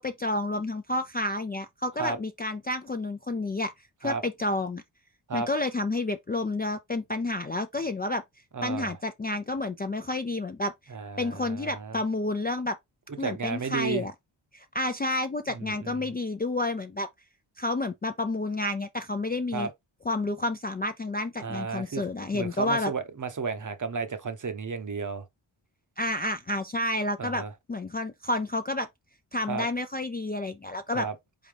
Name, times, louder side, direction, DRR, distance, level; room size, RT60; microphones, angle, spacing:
voice 1, 0.0-3.7 4.0-4.8 5.3-8.2 8.6-10.7 11.2-12.8 13.2-14.1 14.5-17.1 17.6-19.7 20.1-22.9 26.0-28.9 29.3-31.1, left 2 dB, 20° left, 0.3 m, -30 dB
voice 2, 8.5-9.0 10.9-12.0 13.2-14.1 15.5-16.1 19.5-19.7 21.4-22.1 22.3-25.2 27.2-27.5 29.5-29.6 30.9-31.1, right 4 dB, 40° right, 0.8 m, -33 dB
4.0 x 3.6 x 3.3 m
cardioid pair, 75°, 49 cm